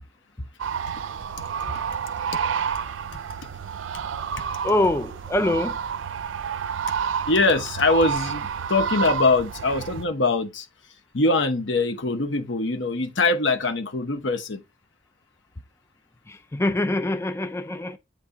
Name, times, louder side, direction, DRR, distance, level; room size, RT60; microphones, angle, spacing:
sound 1, 0.6-10.0, right 7 dB, 90° right, 0.4 m, -30 dB
voice 1, 4.6-5.8 16.3-18.0, left 1 dB, 15° left, 0.4 m, -24 dB
voice 2, 7.3-10.7 11.1-14.6, left 3 dB, 80° left, 1.0 m, -23 dB
8.4 x 3.3 x 3.7 m
head